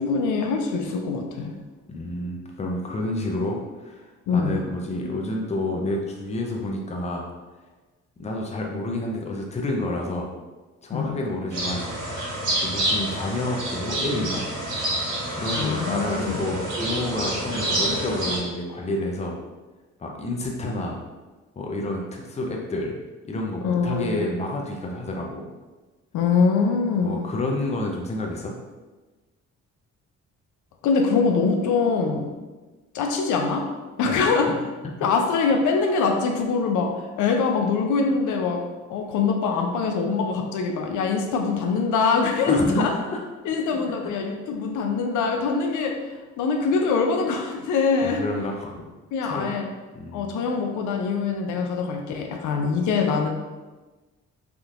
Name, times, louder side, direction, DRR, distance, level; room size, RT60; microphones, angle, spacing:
voice 1, 0.0-1.6 4.3-4.6 10.9-11.2 15.6-16.4 23.6-24.2 26.1-27.3 30.8-32.3 32.9-33.7 34.0-34.5 35.0-42.9 43.4-46.0 46.4-48.2 49.1-49.7 50.1-53.3, left 4 dB, 80° left, 3 dB, 0.5 m, -23 dB
voice 2, 1.9-7.3 8.2-10.3 10.8-11.9 12.6-14.5 15.3-19.4 20.0-21.0 21.6-22.9 23.3-25.5 27.0-28.5 34.0-34.5 34.8-35.1 42.5-43.2 43.7-44.0 48.0-48.8 49.2-49.5 49.9-50.3, left 1 dB, 20° left, 0 dB, 0.6 m, -29 dB
sound 1, 11.5-18.4, right 1 dB, 80° right, 1.5 m, -28 dB
3.5 x 2.7 x 2.4 m, 1.2 s
cardioid pair, 90°, 30 cm